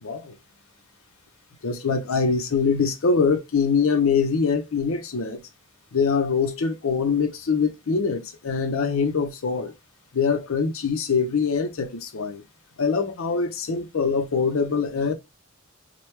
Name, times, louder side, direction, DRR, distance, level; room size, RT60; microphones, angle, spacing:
voice 1, 0.0-0.3 1.6-5.4 5.9-9.7 10.1-12.4 12.8-15.1, left 5 dB, 65° left, 0.6 m, -23 dB
4.5 x 2.2 x 3.1 m
head